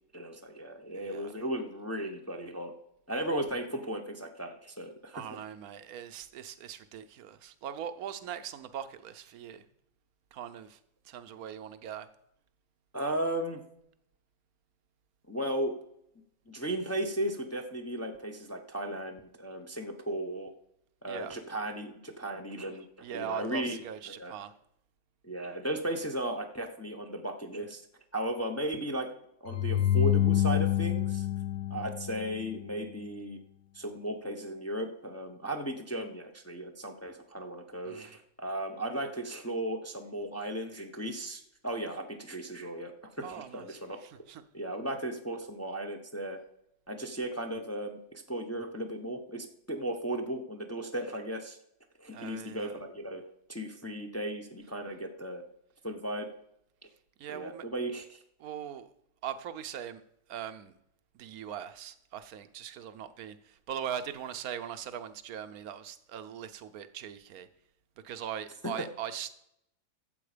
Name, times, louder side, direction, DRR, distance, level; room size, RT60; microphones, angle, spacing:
voice 1, 0.1-2.7 3.1-5.2 12.9-13.6 15.3-15.8 16.5-20.5 21.0-22.9 23.1-23.8 24.1-24.4 25.2-27.8 28.1-29.1 29.4-31.3 31.7-33.4 33.7-42.9 43.2-44.0 44.5-46.4 46.9-51.6 52.0-53.2 53.5-55.4 55.8-56.3 57.3-58.2 68.6-68.7, right 1 dB, 15° left, 3 dB, 0.7 m, -36 dB
voice 2, 0.9-1.3 3.3-3.4 5.1-9.6 10.3-10.8 11.0-12.1 21.1-21.4 23.0-24.5 37.8-38.1 43.2-44.4 52.1-52.8 57.2-57.7 58.4-58.9 59.2-60.0 60.3-60.7 61.1-67.5 68.0-69.3, right 9 dB, 75° right, 12 dB, 1.2 m, -41 dB
sound 1, 29.5-32.7, left 11 dB, 80° left, 1.2 m, -27 dB
12.5 x 7.8 x 5.0 m, 0.76 s
omnidirectional pair, 1.6 m